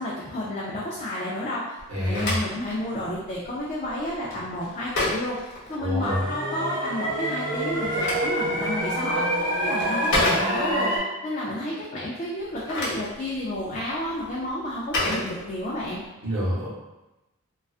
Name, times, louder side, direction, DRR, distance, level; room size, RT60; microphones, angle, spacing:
voice 1, 0.0-1.8 2.1-16.0, left 1 dB, 30° left, -6 dB, 0.3 m, -31 dB
Telephone, 1.8-6.3 7.5-10.9 12.4-16.0, left 2 dB, 50° left, 0.7 m, -32 dB
voice 2, 1.9-2.4 5.8-6.2 16.2-16.7, equal, 70° right, -6 dB, 0.9 m, -26 dB
sound 1, 6.0-11.0, right 1 dB, 15° right, 0.9 m, -26 dB
2.3 x 2.3 x 2.3 m, 1.0 s
head